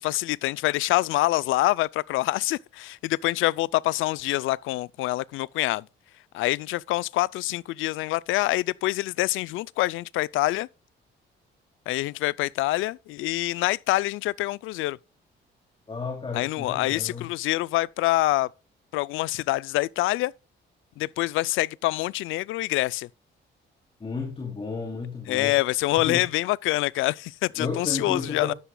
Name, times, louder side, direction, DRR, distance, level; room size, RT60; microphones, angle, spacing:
voice 1, 0.0-5.9 6.3-10.7 11.9-15.0 16.3-18.5 18.9-20.3 21.0-23.1 25.3-28.5, left 18 dB, 90° left, 0.4 m, -26 dB
voice 2, 15.9-17.3 24.0-25.6 26.0-26.2 27.6-28.5, left 4 dB, 25° left, 2.7 m, -33 dB
12.0 x 11.0 x 2.3 m
cardioid pair, 90°, 20 cm